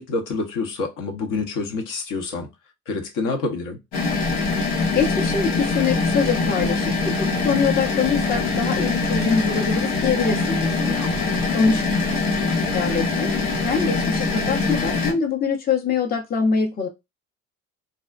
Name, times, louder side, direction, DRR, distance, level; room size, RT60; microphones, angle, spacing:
voice 1, 0.0-2.5 2.9-3.8 11.0-11.4, left 3 dB, 60° left, 0.9 m, -27 dB
sound 1, 3.9-15.1, left 3 dB, 90° left, 0.9 m, -23 dB
voice 2, 4.9-11.1 11.5-11.8 12.7-13.3 13.6-16.9, left 5 dB, 25° left, 0.6 m, -24 dB
2.5 x 2.1 x 2.4 m
hypercardioid pair, 65°, 36 cm